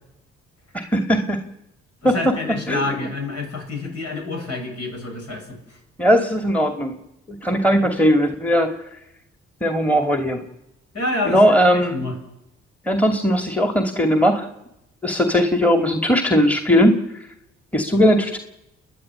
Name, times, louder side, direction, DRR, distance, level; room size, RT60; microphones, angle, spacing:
voice 1, 0.7-1.4 2.0-2.4 2.7-3.1 6.0-7.0 7.3-8.7 9.6-10.4 11.2-12.0 12.9-14.5 15.0-17.0 17.7-18.4, equal, 5° left, 6 dB, 2.5 m, -18 dB
voice 2, 2.0-5.6 7.8-7.9 10.9-12.2, left 2 dB, 55° left, 2 dB, 7.9 m, -28 dB
30.0 x 10.5 x 9.9 m, 0.87 s
hypercardioid pair, 50°, 30 cm